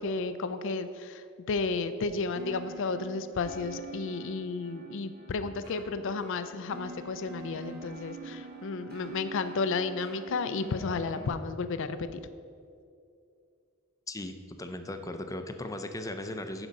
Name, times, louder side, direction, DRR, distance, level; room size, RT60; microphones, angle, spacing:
voice 1, 0.0-12.2, left 4 dB, 65° left, 11 dB, 0.4 m, -32 dB
sound 1, 2.3-11.3, right 3 dB, 50° right, 1.8 m, -46 dB
voice 2, 14.1-16.7, left 1 dB, 15° left, 7 dB, 0.5 m, -37 dB
10.5 x 4.9 x 5.2 m, 2.5 s
head